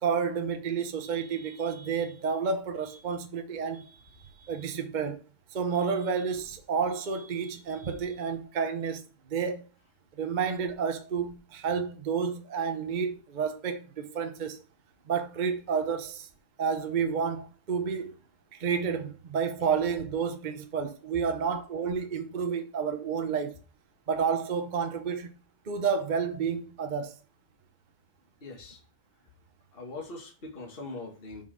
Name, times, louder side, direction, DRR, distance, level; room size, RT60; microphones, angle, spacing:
voice 1, 0.0-4.0 4.4-5.2 5.5-9.0 9.3-9.7 10.2-14.6 15.1-16.3 16.6-18.2 18.5-23.6 24.1-25.3 25.7-27.1, right 6 dB, 55° right, 0.5 m, -30 dB
voice 2, 28.4-28.8 29.7-31.4, left 3 dB, 25° left, 2.2 m, -41 dB
5.7 x 5.5 x 6.4 m
omnidirectional pair, 2.4 m